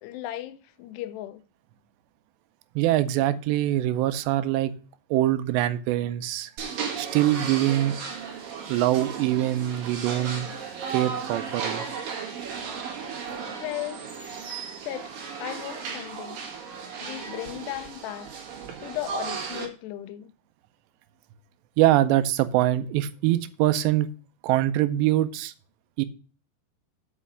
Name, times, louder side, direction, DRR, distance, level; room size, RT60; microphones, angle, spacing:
voice 1, 0.0-1.4 13.5-14.1 14.7-16.4 17.0-18.3 18.8-20.3, left 14 dB, 85° left, 2.5 m, -36 dB
voice 2, 2.8-4.7 5.1-6.5 7.0-8.0 8.7-10.5 10.9-11.9 13.3-13.4 21.8-24.1 24.4-25.5 26.0-26.1, right 14 dB, 85° right, 2.8 m, -23 dB
sound 1, 6.6-19.7, right 6 dB, 60° right, 3.4 m, -35 dB
7.3 x 5.6 x 6.8 m
omnidirectional pair, 5.0 m